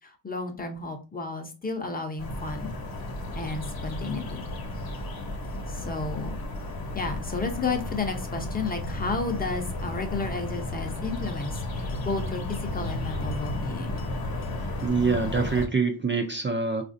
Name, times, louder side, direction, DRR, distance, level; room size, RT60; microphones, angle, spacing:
voice 1, 0.0-2.7 3.3-4.4 5.7-6.4 6.9-14.0, left 3 dB, 20° left, 5 dB, 0.7 m, -32 dB
sound 1, 2.2-15.7, left 1 dB, 50° left, 0.9 m, -33 dB
voice 2, 14.6-16.8, right 4 dB, 25° right, 4 dB, 0.4 m, -26 dB
4.0 x 2.5 x 2.6 m, 0.32 s
wide cardioid pair, 140°, 45 cm